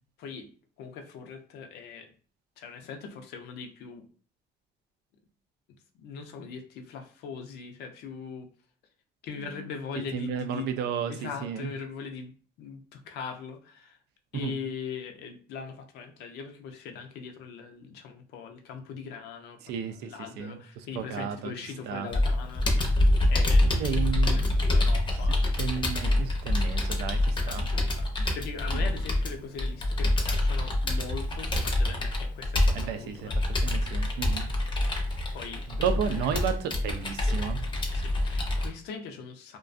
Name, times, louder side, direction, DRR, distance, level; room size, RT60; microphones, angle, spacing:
voice 1, 0.2-0.5 0.8-2.1 2.6-4.1 5.9-8.5 9.2-10.7 11.1-12.3 12.6-14.0 14.3-22.9 23.3-23.7 24.3-25.7 27.4-33.4 35.3-35.6 36.1-36.2 37.9-39.6, left 6 dB, 80° left, 5 dB, 0.5 m, -41 dB
voice 2, 10.1-11.7 14.3-14.6 19.6-20.1 20.4-20.6 20.9-21.5 21.9-22.1 23.6-24.7 25.6-27.7 32.7-34.5 35.7-37.6, right 7 dB, 80° right, 9 dB, 0.4 m, -33 dB
Computer keyboard, 22.1-38.7, left 1 dB, 30° left, 0.6 m, -26 dB
2.4 x 2.2 x 2.5 m, 0.40 s
cardioid pair, 110°, 17 cm